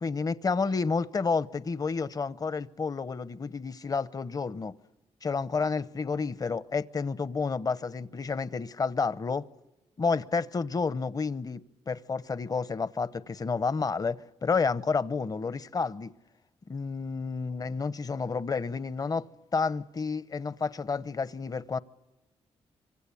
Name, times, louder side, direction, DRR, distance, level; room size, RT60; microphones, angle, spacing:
voice 1, 0.0-4.7 5.2-9.5 10.0-16.1 16.7-19.3 19.5-21.8, left 4 dB, 35° left, 0.9 m, -30 dB
25.5 x 25.5 x 8.5 m
cardioid pair, 105°, 11 cm